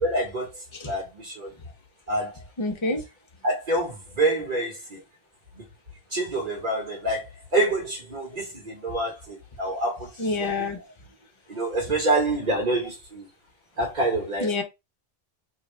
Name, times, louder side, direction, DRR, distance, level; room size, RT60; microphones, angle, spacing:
voice 1, 0.0-1.5 2.1-2.4 3.4-5.0 5.6-5.7 6.1-10.4 11.5-13.3 13.8-14.6, right 2 dB, 45° right, 1.3 m, -27 dB
voice 2, 2.6-3.0 10.2-10.8 14.4-14.6, left 2 dB, 30° left, 0.8 m, -27 dB
4.8 x 2.5 x 3.2 m
omnidirectional pair, 1.1 m